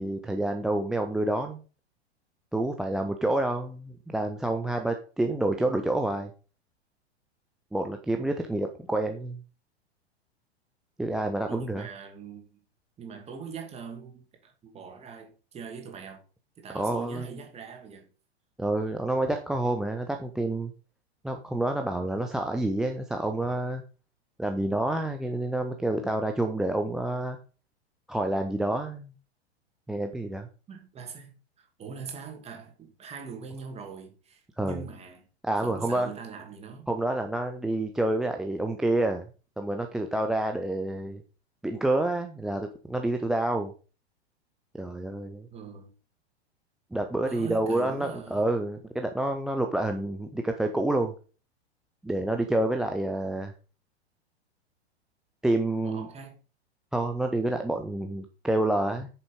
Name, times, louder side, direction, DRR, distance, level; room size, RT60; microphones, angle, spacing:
voice 1, 0.0-1.6 2.5-6.3 7.7-9.4 11.0-11.9 16.7-17.3 18.6-20.7 21.2-23.8 24.4-27.4 28.1-29.1 29.9-30.5 34.6-34.8 35.4-36.1 36.9-39.3 39.6-41.2 41.6-43.7 44.7-45.5 46.9-51.1 52.0-53.5 55.4-56.1 56.9-59.1, right 1 dB, ahead, 0.4 m, -28 dB
voice 2, 11.5-12.6 13.0-16.2 16.6-18.1 30.7-35.2 35.6-36.9 45.5-45.9 47.3-48.5 55.8-56.4, right 6 dB, 20° right, 2.6 m, -42 dB
8.6 x 6.8 x 5.2 m
figure-of-eight pair, 100°, 33 cm